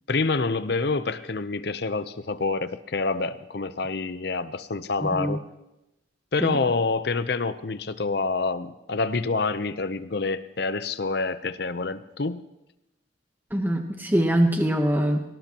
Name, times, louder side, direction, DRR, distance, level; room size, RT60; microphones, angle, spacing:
voice 1, 0.1-5.4 6.3-12.4, left 3 dB, 55° left, 13 dB, 0.7 m, -27 dB
voice 2, 5.0-5.4 6.4-6.6 13.5-15.2, right 1 dB, 10° right, 4 dB, 1.0 m, -23 dB
23.5 x 18.0 x 3.0 m, 0.96 s
head